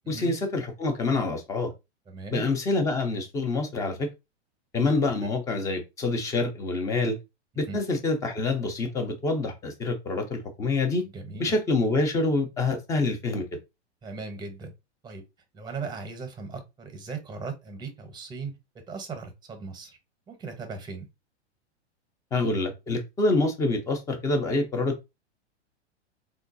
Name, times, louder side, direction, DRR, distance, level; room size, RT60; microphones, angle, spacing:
voice 1, 0.1-1.7 2.3-4.1 4.7-7.2 7.6-11.0 11.4-13.5 22.3-25.1, left 3 dB, 10° left, 0.3 m, -26 dB
voice 2, 2.1-2.4 5.0-5.3 7.7-7.8 11.1-11.5 14.0-14.7 15.0-15.2 15.5-20.0 20.3-21.1, right 4 dB, 10° right, 0.7 m, -38 dB
3.6 x 2.3 x 2.5 m
hypercardioid pair, 125°, 35 cm